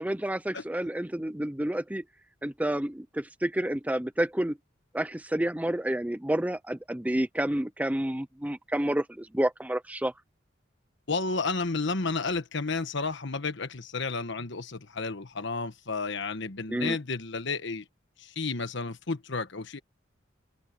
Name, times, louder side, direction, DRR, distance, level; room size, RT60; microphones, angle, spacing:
voice 1, 0.0-2.0 2.4-4.6 4.9-10.1 16.7-17.0, right 1 dB, 5° right, 0.6 m, -29 dB
voice 2, 11.1-17.8 18.2-19.8, left 4 dB, 65° left, 1.3 m, -32 dB
open air
head